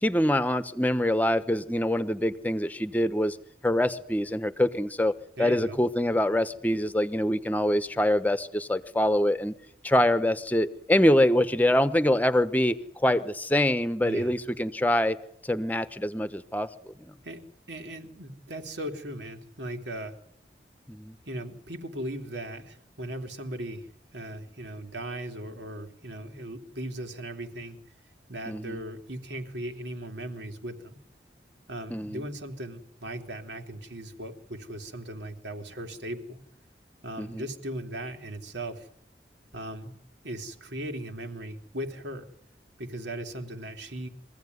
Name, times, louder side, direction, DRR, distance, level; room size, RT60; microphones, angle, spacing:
voice 1, 0.0-3.4 3.6-5.1 5.4-9.5 9.8-15.2 15.4-17.1 20.9-21.1 28.5-28.8 31.9-32.2 37.2-37.5, left 1 dB, 10° left, 12 dB, 1.0 m, -25 dB
voice 2, 5.4-5.8 14.0-14.3 17.2-17.4 17.7-20.2 21.2-27.8 28.3-31.0 31.7-36.4 37.0-38.9 39.5-40.0 40.2-42.3 42.8-44.1, right 1 dB, 90° right, 4 dB, 3.2 m, -38 dB
24.0 x 16.0 x 9.5 m, 0.73 s
head